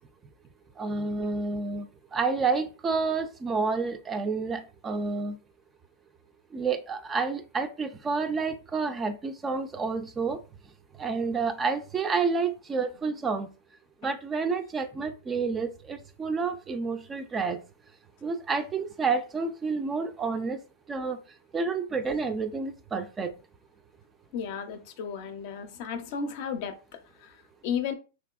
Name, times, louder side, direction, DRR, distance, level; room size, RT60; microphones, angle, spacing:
voice 1, 0.8-1.9 2.1-5.4 6.5-10.4 11.0-13.5 14.0-17.6 18.2-20.6 20.9-21.2 21.5-23.3, right 4 dB, 20° right, 0.3 m, -29 dB
voice 2, 24.3-27.9, left 7 dB, 55° left, 0.5 m, -34 dB
2.9 x 2.6 x 2.3 m
hypercardioid pair, 125°, 0 cm